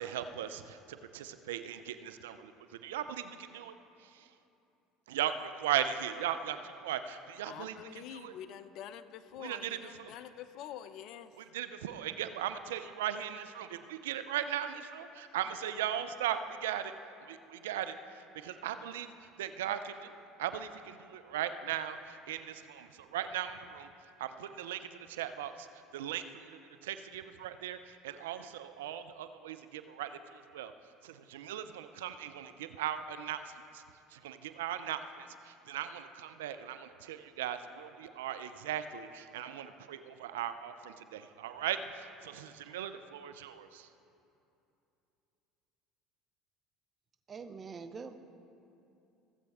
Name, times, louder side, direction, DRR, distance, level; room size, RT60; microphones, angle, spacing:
voice 1, 0.0-2.5 2.8-3.7 4.0-4.3 5.1-7.8 8.1-8.3 9.4-10.1 11.4-16.9 17.3-19.1 19.4-20.1 20.4-23.9 24.2-25.7 25.9-30.7 31.0-33.8 34.1-43.9, right 10 dB, 85° right, 10 dB, 0.4 m, -38 dB
voice 2, 7.4-11.3, left 10 dB, 60° left, 13 dB, 0.5 m, -46 dB
voice 3, 47.3-48.1, right 5 dB, 35° right, 9 dB, 0.7 m, -44 dB
16.0 x 7.9 x 3.6 m, 2.8 s
hypercardioid pair, 75°, 0 cm